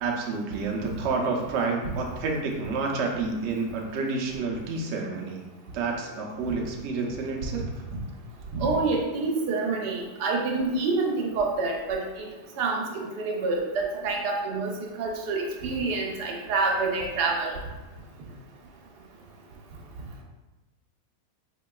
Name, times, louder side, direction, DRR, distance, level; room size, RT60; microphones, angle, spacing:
voice 1, 0.0-5.4 5.7-7.7, right 4 dB, 70° right, 1 dB, 0.6 m, -29 dB
voice 2, 8.5-12.2 12.6-14.7 15.0-17.6, right 3 dB, 85° right, 0 dB, 1.2 m, -27 dB
4.4 x 2.9 x 2.3 m, 1.1 s
omnidirectional pair, 1.7 m